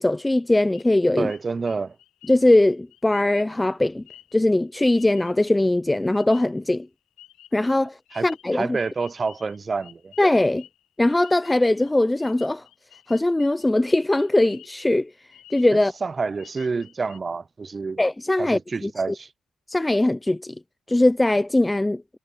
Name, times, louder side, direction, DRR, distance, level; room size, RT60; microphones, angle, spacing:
voice 1, 0.0-1.3 2.3-4.0 4.3-6.9 7.5-8.0 8.2-8.8 10.2-10.6 11.0-12.6 13.1-15.1 15.5-15.9 18.0-18.9 19.7-20.5 20.9-22.0, left 1 dB, 15° left, 0.8 m, -20 dB
sound 1, 0.7-5.6 6.1-6.9 7.2-14.9 15.2-16.0 16.3-17.2, left 14 dB, 85° left, 6.9 m, -52 dB
voice 2, 1.2-2.0 8.1-8.3 8.5-10.1 15.7-18.0 18.4-19.3, right 4 dB, 40° right, 0.7 m, -28 dB
supercardioid pair, 60°, 0 cm